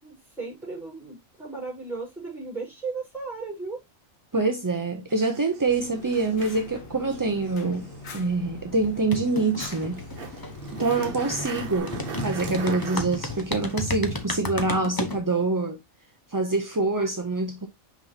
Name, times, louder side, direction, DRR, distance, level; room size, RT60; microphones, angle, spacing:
voice 1, 0.0-3.8, right 4 dB, ahead, 4.3 m, -36 dB
voice 2, 4.3-7.9 8.1-10.0 10.7-15.8 16.3-17.7, right 3 dB, 25° right, 0.5 m, -25 dB
sound 1, 5.1-14.9, right 5 dB, 50° right, 1.1 m, -42 dB
Fire, 5.7-11.8, left 3 dB, 85° left, 1.6 m, -43 dB
sound 2, 8.8-15.2, left 2 dB, 20° left, 0.8 m, -33 dB
6.0 x 5.7 x 2.8 m
omnidirectional pair, 1.3 m